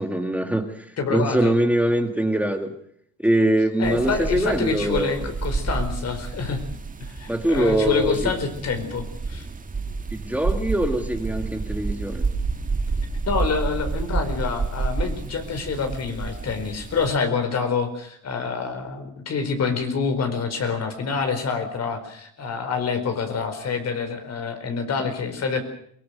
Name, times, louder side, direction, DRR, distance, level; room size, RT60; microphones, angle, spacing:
voice 1, 0.0-2.7 3.2-5.2 7.3-8.2 10.1-12.3, right 1 dB, 5° right, 5 dB, 1.9 m, -23 dB
voice 2, 1.0-1.5 3.8-6.6 7.2-9.5 13.3-25.6, left 5 dB, 60° left, 7 dB, 4.7 m, -27 dB
sound 1, 3.8-17.2, right 4 dB, 25° right, 1.6 m, -29 dB
23.0 x 19.5 x 6.5 m, 0.66 s
cardioid pair, 90°, 30 cm